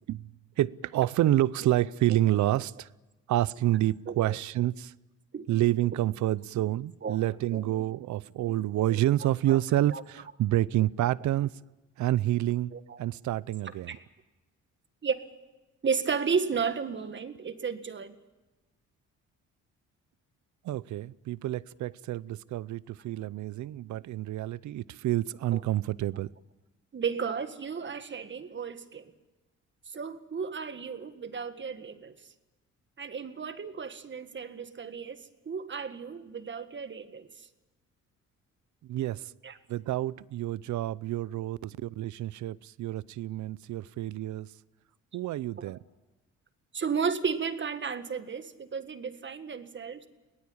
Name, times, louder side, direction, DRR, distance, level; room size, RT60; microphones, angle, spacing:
voice 1, 0.6-2.9 3.3-4.9 5.5-11.5 12.0-12.7 13.0-14.0 20.6-26.3 38.9-39.2 39.7-44.5 45.1-45.8, right 14 dB, 70° right, 0.7 m, -28 dB
voice 2, 4.1-4.4 5.3-5.5 5.9-6.0 7.0-7.2 7.5-7.6 9.2-9.6 9.9-10.0 12.7-13.0 13.9-14.0 15.0-15.2 15.8-18.1 25.5-25.6 26.9-29.1 29.9-32.1 33.0-37.5 39.4-39.6 45.6-45.7 46.7-50.1, right 6 dB, 40° right, 1.8 m, -33 dB
22.5 x 18.5 x 8.7 m
cardioid pair, 90°, 30 cm